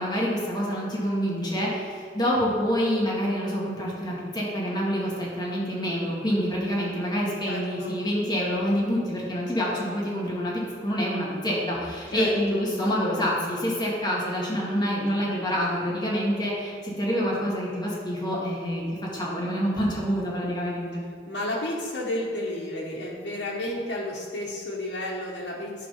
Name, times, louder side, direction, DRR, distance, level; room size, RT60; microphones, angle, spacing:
voice 1, 0.0-21.0, equal, 25° left, -5 dB, 1.8 m, -27 dB
voice 2, 7.5-7.9 12.1-12.7 21.3-25.9, left 1 dB, 90° left, -6 dB, 1.3 m, -32 dB
11.0 x 3.9 x 5.6 m, 2.2 s
head